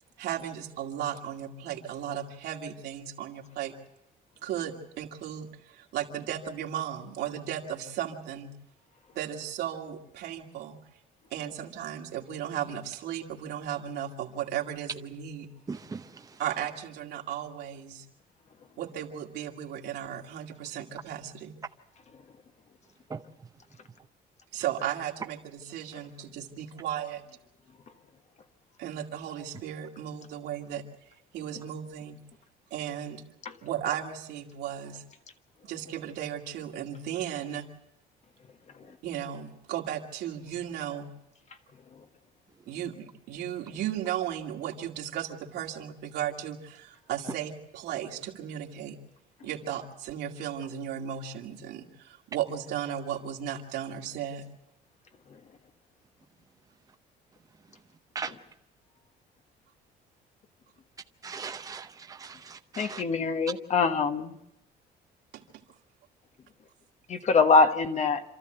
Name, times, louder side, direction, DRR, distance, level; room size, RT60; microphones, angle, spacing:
voice 1, 0.2-3.7 4.4-8.5 9.1-10.8 11.3-15.5 16.4-18.0 18.8-21.6 24.5-27.2 28.8-30.8 31.3-32.2 32.7-33.2 33.6-35.0 35.6-37.7 39.0-41.1 42.7-49.0 49.4-54.4 65.3-65.4, right 10 dB, 80° right, 2.3 m, -35 dB
voice 2, 15.7-16.1 23.1-23.2 58.1-58.3 61.2-63.0, right 5 dB, 20° right, 0.8 m, -38 dB
voice 3, 62.8-64.3 67.1-68.2, left 4 dB, 40° left, 1.4 m, -24 dB
27.0 x 13.5 x 7.9 m
cardioid pair, 110°, 17 cm